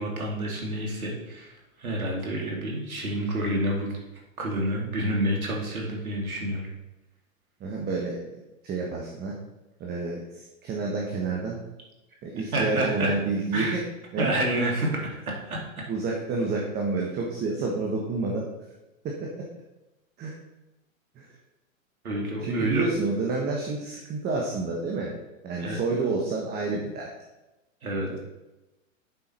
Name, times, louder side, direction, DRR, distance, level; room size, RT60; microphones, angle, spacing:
voice 1, 0.0-3.9 4.4-6.7 12.5-13.1 13.5-13.8 14.2-15.9 22.0-22.9 25.6-25.8 27.8-28.2, right 1 dB, 85° right, -1 dB, 2.5 m, -28 dB
voice 2, 7.6-8.2 8.6-9.3 9.8-11.6 12.2-13.8 14.1-14.3 15.9-18.5 19.0-19.3 20.2-20.3 21.1-21.3 22.4-25.1 25.4-27.1 27.9-28.2, right 3 dB, 25° right, -1 dB, 1.3 m, -29 dB
7.8 x 6.1 x 4.3 m, 1.0 s
hypercardioid pair, 120°, 42 cm